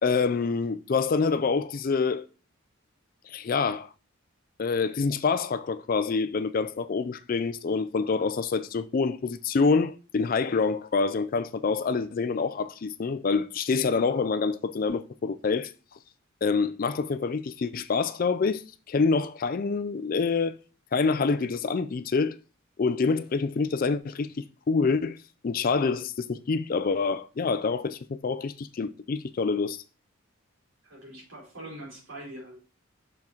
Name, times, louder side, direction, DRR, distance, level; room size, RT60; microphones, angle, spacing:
voice 1, 0.0-2.2 3.3-3.9 4.6-15.7 16.4-20.5 20.9-22.4 22.8-25.2 25.4-29.8, left 4 dB, 40° left, 0.4 m, -26 dB
voice 2, 30.8-32.6, right 1 dB, 65° right, 4.7 m, -43 dB
6.4 x 5.9 x 4.4 m
head